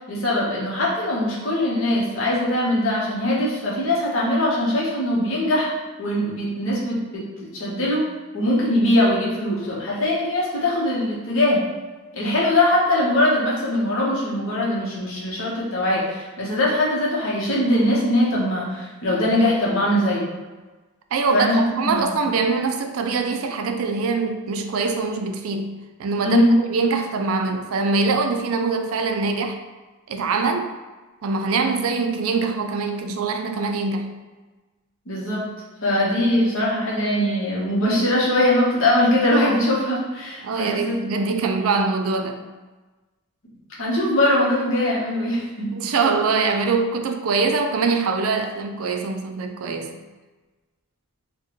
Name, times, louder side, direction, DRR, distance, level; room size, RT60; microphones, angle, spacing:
voice 1, 0.0-5.7 6.0-8.1 8.3-11.6 12.1-20.2 21.3-22.3 26.2-26.5 35.1-35.4 35.8-41.0 41.4-41.6 43.8-45.7, left 1 dB, 60° left, -5 dB, 1.1 m, -21 dB
voice 2, 21.1-25.7 26.0-29.6 30.1-30.7 31.2-34.1 40.4-42.4 45.6-50.0, right 4 dB, 70° right, 5 dB, 0.4 m, -23 dB
4.5 x 2.3 x 3.0 m, 1.2 s
head